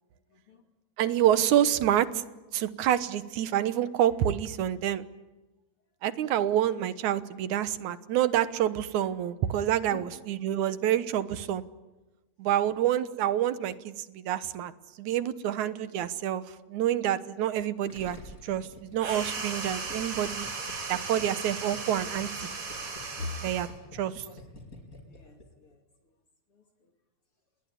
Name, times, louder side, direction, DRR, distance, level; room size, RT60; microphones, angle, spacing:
voice 1, 0.3-0.6 9.9-11.0 15.6-16.0 23.2-23.4 23.7-24.4 25.0-25.8 26.5-26.9, left 3 dB, 50° left, 4 dB, 3.2 m, -45 dB
voice 2, 1.0-2.2 2.5-5.1 6.0-11.6 12.4-14.7 15.0-16.4 16.7-18.2 18.4-20.5 20.9-22.5 23.4-23.7 23.9-24.2, right 11 dB, 85° right, 13 dB, 2.6 m, -27 dB
Gurgling, 17.9-25.5 25.7-25.8, left 2 dB, 30° left, 4.8 m, -48 dB
sound 1, 19.0-23.8, right 4 dB, 65° right, 4.9 m, -36 dB
28.5 x 21.5 x 9.7 m, 1.1 s
omnidirectional pair, 3.3 m